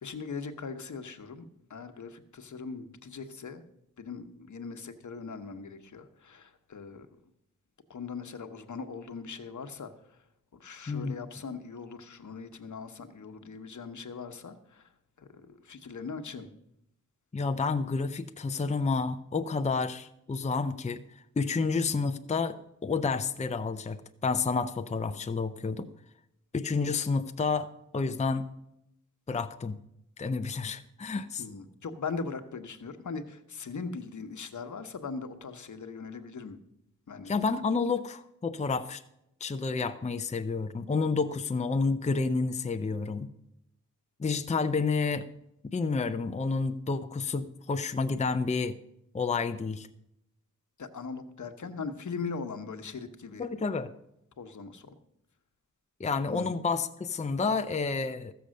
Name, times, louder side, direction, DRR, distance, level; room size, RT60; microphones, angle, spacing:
voice 1, 0.0-3.7 4.0-7.1 7.9-10.2 10.5-14.9 15.2-16.5 31.4-36.6 37.1-37.3 50.8-53.5 54.4-54.9 56.3-56.5, left 5 dB, 65° left, 8 dB, 1.1 m, -40 dB
voice 2, 17.3-21.0 21.4-24.0 24.2-25.9 26.5-28.5 29.3-29.8 30.2-31.4 37.3-39.0 39.4-43.3 44.2-45.3 45.6-48.8 49.1-49.9 53.4-53.9 56.0-58.3, left 4 dB, 20° left, 8 dB, 0.5 m, -30 dB
14.5 x 6.9 x 6.4 m, 0.81 s
wide cardioid pair, 80°, 32 cm